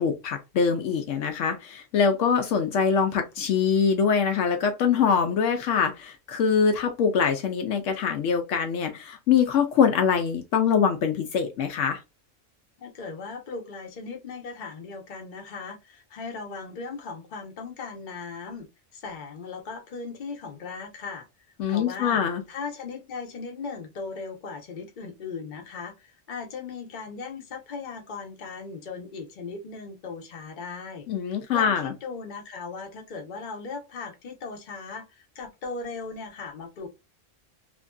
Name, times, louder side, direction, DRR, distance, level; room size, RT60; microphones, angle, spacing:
voice 1, 0.0-12.0 21.6-22.4 31.1-31.9, left 6 dB, 75° left, 0.9 m, -24 dB
voice 2, 12.8-18.7 18.9-21.3 21.7-22.2 22.5-31.1 31.5-36.9, left 4 dB, 45° left, 0.8 m, -38 dB
2.9 x 2.6 x 2.2 m
omnidirectional pair, 1.3 m